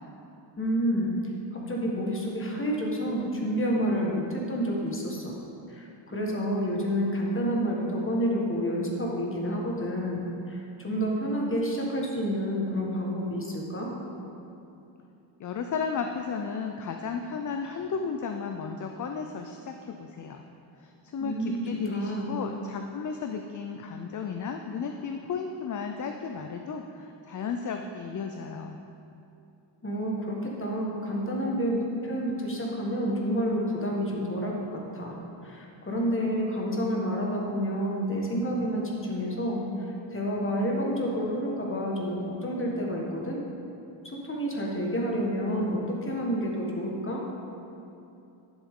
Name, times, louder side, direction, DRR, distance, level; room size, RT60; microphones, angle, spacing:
voice 1, 0.6-1.2 1.5-5.3 5.7-10.2 10.5-13.9 21.2-22.3 29.8-34.6 34.9-35.1 35.4-39.6 40.1-43.4 44.0-47.2, equal, 30° left, -2 dB, 1.6 m, -29 dB
voice 2, 15.4-20.4 20.8-28.8, left 5 dB, 45° left, 5 dB, 0.5 m, -34 dB
10.5 x 7.1 x 3.7 m, 2.7 s
cardioid pair, 105°, 45 cm